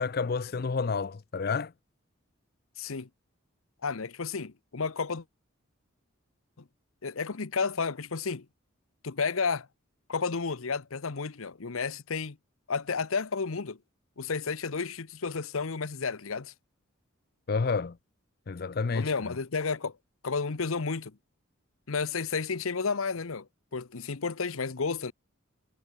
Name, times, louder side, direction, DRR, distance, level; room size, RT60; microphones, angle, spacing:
voice 1, 0.0-1.7 17.5-18.0 18.5-19.1, left 4 dB, 45° left, 0.5 m, -29 dB
voice 2, 2.8-3.1 3.8-5.2 6.6-6.7 7.0-8.5 9.0-9.7 10.1-12.4 12.7-13.8 14.2-16.5 18.9-19.9 20.2-21.2 21.9-25.1, left 5 dB, 85° left, 0.9 m, -32 dB
head